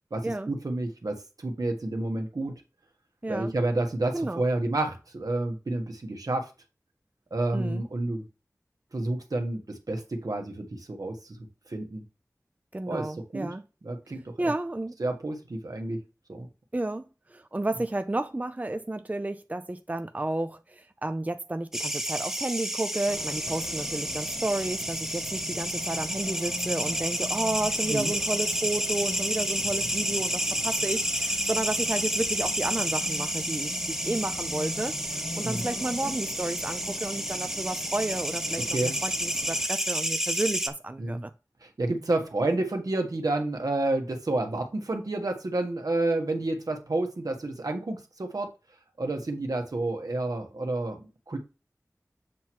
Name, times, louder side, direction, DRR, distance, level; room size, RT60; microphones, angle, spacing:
voice 1, 0.1-2.5 3.3-6.5 7.3-8.2 8.9-11.4 11.7-12.0 12.9-13.5 13.8-14.3 15.0-16.0 16.3-16.5 27.9-28.1 35.4-35.6 38.7-38.9 41.0-41.2 41.6-48.5 49.0-51.4, right 2 dB, 75° right, 1.4 m, -30 dB
voice 2, 3.2-3.5 4.1-4.4 7.5-7.8 12.7-13.6 14.4-15.0 16.7-35.0 35.4-41.3, right 2 dB, 25° right, 0.5 m, -32 dB
sound 1, 21.7-40.7, equal, 5° right, 0.9 m, -30 dB
Race car auto racing, 23.1-39.7, left 2 dB, 35° left, 0.9 m, -42 dB
7.5 x 3.1 x 6.0 m
wide cardioid pair, 55°, 6 cm